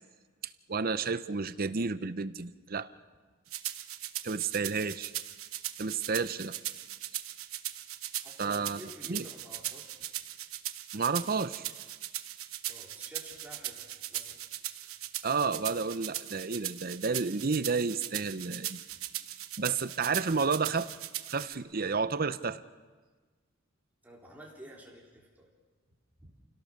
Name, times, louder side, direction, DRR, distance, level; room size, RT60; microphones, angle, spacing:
voice 1, 0.7-2.9 4.2-5.1 5.8-6.5 8.4-8.8 9.1-9.2 10.9-11.7 15.2-18.8 19.6-20.9 21.3-22.6, right 4 dB, 45° right, 13 dB, 0.7 m, -31 dB
sound 1, 3.5-21.6, right 13 dB, 85° right, 1.0 m, -39 dB
voice 2, 8.2-10.0 12.7-13.8 14.1-14.4 24.0-25.5 26.2-26.3, right 1 dB, 10° right, -3 dB, 3.7 m, -50 dB
29.0 x 17.5 x 6.5 m, 1.4 s
head